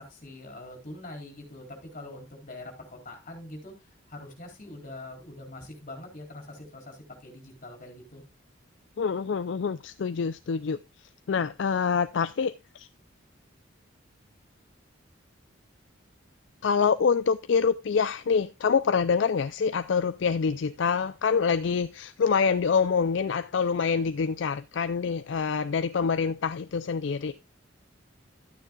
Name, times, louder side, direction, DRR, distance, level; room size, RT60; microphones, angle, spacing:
voice 1, 0.0-8.2, left 1 dB, 40° left, 4.0 m, -44 dB
voice 2, 9.0-12.9 16.6-27.3, left 5 dB, 65° left, 0.4 m, -26 dB
12.5 x 9.3 x 2.3 m
head